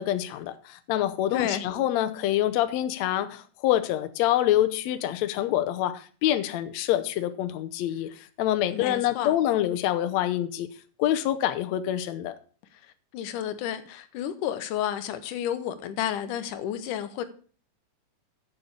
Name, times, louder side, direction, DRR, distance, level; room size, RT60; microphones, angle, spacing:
voice 1, 0.0-8.1 8.4-10.7 11.0-12.4, left 12 dB, 70° left, 1.9 m, -26 dB
voice 2, 1.3-1.6 8.7-9.4 12.7-17.2, left 10 dB, 90° left, 2.5 m, -31 dB
7.1 x 7.0 x 8.0 m
omnidirectional pair, 3.5 m